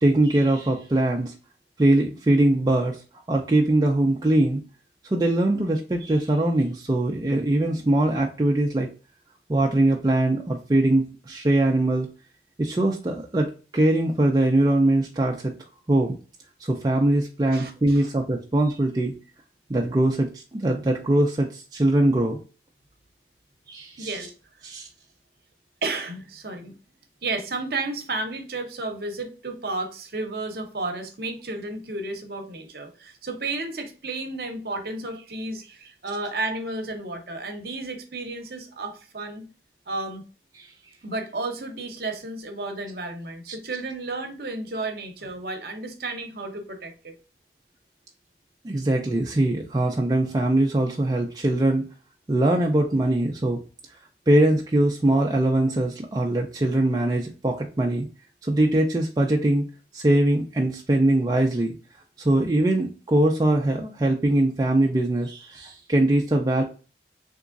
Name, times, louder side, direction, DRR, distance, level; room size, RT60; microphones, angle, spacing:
voice 1, 0.0-1.3 1.8-3.0 3.3-4.6 5.0-8.9 9.5-12.1 12.6-15.5 15.9-16.2 16.6-19.1 19.7-22.4 23.7-24.1 24.6-24.9 40.6-40.7 48.6-51.8 52.3-53.6 54.3-58.1 58.4-59.6 59.9-61.7 62.2-66.6, right 1 dB, 20° right, 0.3 m, -22 dB
voice 2, 17.5-18.1 24.0-24.3 25.8-26.8 27.2-39.5 39.9-40.2 41.0-47.1, right 2 dB, 55° right, 0.7 m, -32 dB
3.6 x 3.0 x 2.4 m
head